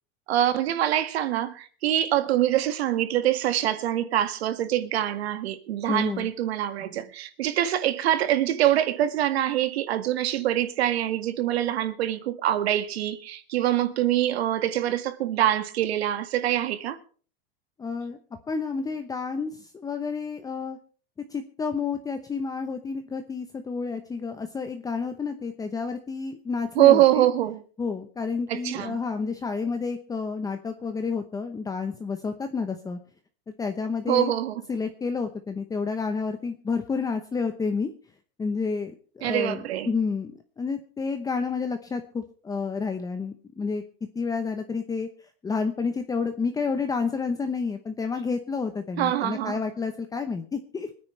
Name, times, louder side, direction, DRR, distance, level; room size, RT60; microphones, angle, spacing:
voice 1, 0.3-17.0 26.8-27.6 28.5-29.0 34.1-34.5 39.2-39.9 49.0-49.6, right 12 dB, 85° right, 1.9 m, -24 dB
voice 2, 5.9-6.3 17.8-18.2 18.5-20.8 21.3-27.3 27.8-33.0 33.6-34.3 34.7-37.9 38.4-43.8 44.1-45.1 45.4-50.9, left 4 dB, 10° left, 0.9 m, -30 dB
25.5 x 9.6 x 3.3 m
supercardioid pair, 150°, 31 cm